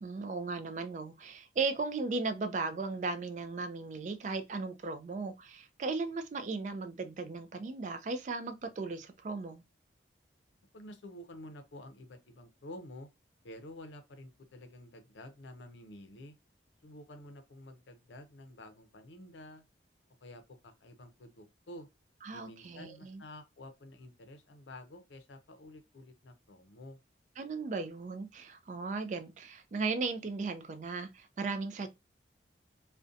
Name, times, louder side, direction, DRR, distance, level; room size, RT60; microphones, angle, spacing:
voice 1, 0.0-9.6 22.2-23.2 27.4-31.9, right 4 dB, 40° right, 0.3 m, -36 dB
voice 2, 10.7-13.1 13.4-16.4 16.8-19.6 20.2-21.9 22.3-27.0, left 1 dB, 80° left, 0.5 m, -50 dB
2.6 x 2.1 x 2.4 m
head